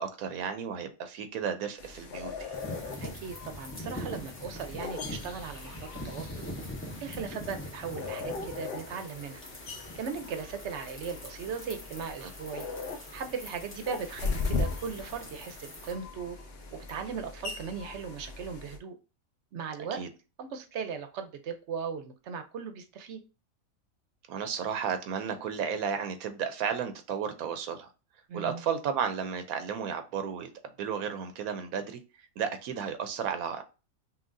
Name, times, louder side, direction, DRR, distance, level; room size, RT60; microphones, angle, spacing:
voice 1, 0.0-2.6 12.2-12.3 19.9-20.1 24.3-27.9 28.3-32.0 32.4-33.6, right 7 dB, 90° right, 9 dB, 1.0 m, -33 dB
sound 1, 1.8-18.8, left 4 dB, 55° left, 0.9 m, -39 dB
sound 2, 2.5-15.9, left 1 dB, 20° left, 0.4 m, -43 dB
voice 2, 3.0-6.4 7.0-9.4 9.9-12.7 13.1-16.4 16.7-19.0 19.5-20.0 20.4-23.2 28.3-28.6, right 6 dB, 60° right, 7 dB, 0.8 m, -38 dB
5.7 x 2.4 x 2.5 m, 0.31 s
omnidirectional pair, 1.5 m